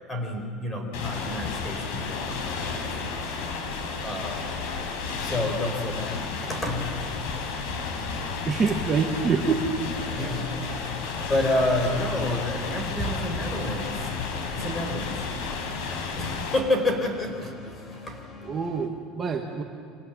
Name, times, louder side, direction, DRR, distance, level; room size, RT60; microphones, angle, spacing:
voice 1, 0.1-3.4 4.0-4.6 5.2-7.1 10.1-10.8 11.3-14.1 14.5-15.3 16.2-18.3, left 1 dB, 15° left, 4 dB, 4.4 m, -29 dB
sound 1, 0.9-16.6, left 4 dB, 90° left, 4.5 m, -32 dB
sound 2, 6.8-18.9, left 3 dB, 30° left, 3.2 m, -45 dB
voice 2, 8.4-9.7 18.4-19.6, right 5 dB, 20° right, 0 dB, 1.6 m, -26 dB
30.0 x 25.5 x 7.4 m, 2.4 s
cardioid pair, 175°, 0 cm